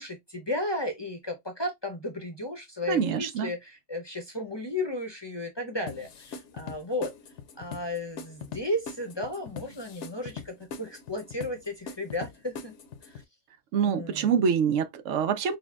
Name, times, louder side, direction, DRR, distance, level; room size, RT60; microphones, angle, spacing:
voice 1, 0.0-7.1 7.6-12.7 13.0-13.2 13.8-14.4, left 1 dB, 25° left, 0.6 m, -34 dB
voice 2, 2.9-3.5 13.7-15.6, right 7 dB, 80° right, 1.0 m, -25 dB
sound 1, 5.9-13.2, left 5 dB, 70° left, 1.0 m, -42 dB
5.9 x 2.2 x 2.3 m
omnidirectional pair, 1.3 m